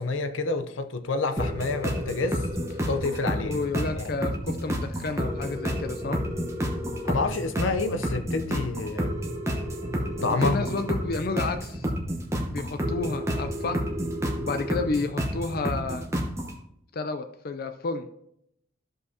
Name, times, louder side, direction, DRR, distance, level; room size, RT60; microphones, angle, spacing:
voice 1, 0.0-3.6 4.0-4.1 7.0-9.1 10.2-10.7, left 3 dB, 85° left, 0.7 m, -28 dB
sound 1, 1.4-16.5, equal, 15° right, 1.0 m, -30 dB
voice 2, 3.4-6.2 10.4-11.9 12.5-13.8 14.4-16.1 16.9-18.1, left 3 dB, 50° left, 0.4 m, -31 dB
13.5 x 5.3 x 2.8 m
head